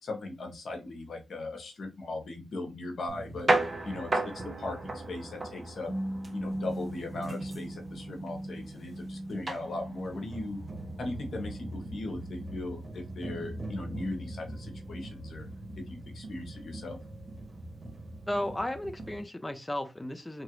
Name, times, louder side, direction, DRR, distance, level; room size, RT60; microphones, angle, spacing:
voice 1, 0.0-5.9 6.3-10.6 11.0-15.5 15.8-17.0, left 2 dB, 70° left, 0.9 m, -38 dB
sound 1, 3.1-19.2, right 2 dB, 30° right, 0.6 m, -36 dB
voice 2, 18.3-20.4, left 1 dB, 15° left, 0.5 m, -34 dB
3.0 x 2.4 x 2.9 m
wide cardioid pair, 110°, 0 cm